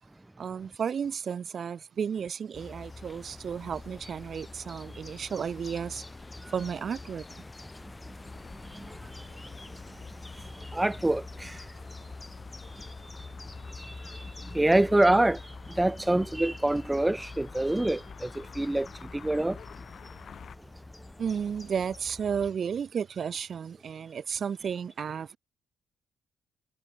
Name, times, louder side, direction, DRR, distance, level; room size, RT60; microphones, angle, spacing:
voice 1, 0.4-6.0 6.5-7.4 21.2-25.4, right 7 dB, 50° right, 1.3 m, -33 dB
sound 1, 2.5-22.5, left 2 dB, 20° left, 3.6 m, -46 dB
sound 2, 8.2-20.6, left 7 dB, 55° left, 4.9 m, -50 dB
voice 2, 10.7-11.6 13.8-14.2 14.5-15.4 15.8-18.9 19.1-19.6, right 1 dB, 10° right, 0.8 m, -25 dB
cardioid pair, 90°, 0 cm